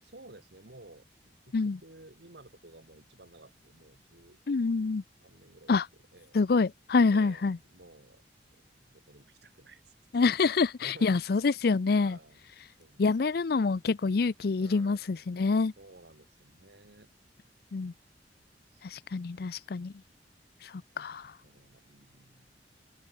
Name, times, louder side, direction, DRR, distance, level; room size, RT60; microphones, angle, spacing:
voice 1, 0.0-4.4 4.6-4.9 5.2-6.4 7.1-8.2 8.5-9.9 10.3-11.2 11.5-11.6 11.9-12.4 12.8-13.1 14.6-15.5 15.8-17.1 18.4-18.5 18.7-18.8 19.2-19.3 21.4-22.5, right 2 dB, 70° right, 2.7 m, -55 dB
voice 2, 4.5-5.0 5.7-5.8 6.3-7.6 10.1-12.2 13.0-15.7 17.7-17.9 18.8-19.9 20.6-21.3, left 4 dB, 60° left, 0.5 m, -26 dB
open air
head